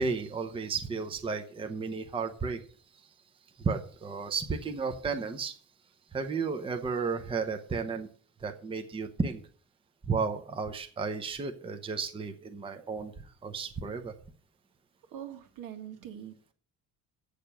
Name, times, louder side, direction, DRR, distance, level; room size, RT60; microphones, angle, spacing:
voice 1, 0.0-2.6 3.6-5.6 6.1-8.1 8.4-9.4 10.1-13.1 13.4-14.1, right 4 dB, 15° right, 6 dB, 0.7 m, -33 dB
voice 2, 15.1-16.5, right 10 dB, 70° right, 6 dB, 1.9 m, -43 dB
8.9 x 6.6 x 6.8 m, 0.44 s
cardioid pair, 175°, 34 cm